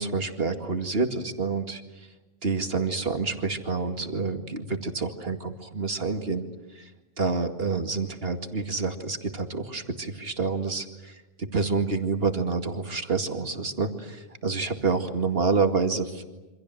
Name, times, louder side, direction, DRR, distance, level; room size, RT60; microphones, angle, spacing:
voice 1, 0.0-1.8 2.4-6.4 6.7-6.9 7.2-16.2, right 4 dB, 50° right, 5 dB, 2.4 m, -28 dB
28.0 x 26.0 x 7.8 m, 1.1 s
omnidirectional pair, 1.3 m